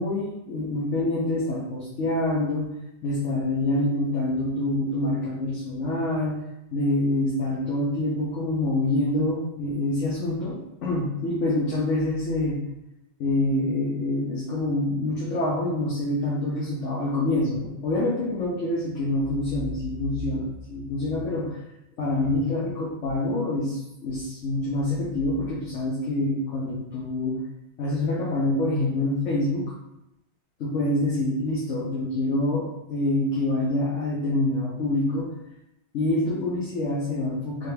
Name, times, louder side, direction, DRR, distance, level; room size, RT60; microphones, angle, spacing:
voice 1, 0.0-2.7 3.0-6.4 6.7-12.6 13.2-21.6 22.0-27.4 27.8-29.6 30.6-35.3 35.9-37.7, left 2 dB, 80° left, -6 dB, 1.2 m, -26 dB
3.9 x 2.8 x 3.3 m, 0.89 s
omnidirectional pair, 1.2 m